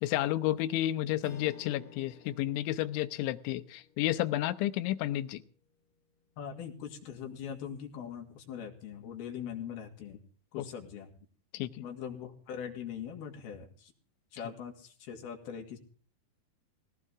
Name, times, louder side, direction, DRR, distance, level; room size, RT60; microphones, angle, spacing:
voice 1, 0.0-5.4 11.5-11.8, left 14 dB, 85° left, 11 dB, 3.2 m, -31 dB
Strum, 1.2-5.8, left 5 dB, 45° left, 2.2 m, -54 dB
voice 2, 6.4-10.2 10.5-11.1 11.8-13.9 14.3-15.8, left 8 dB, 60° left, 2 dB, 4.0 m, -41 dB
19.0 x 18.0 x 3.6 m, 0.43 s
omnidirectional pair, 5.3 m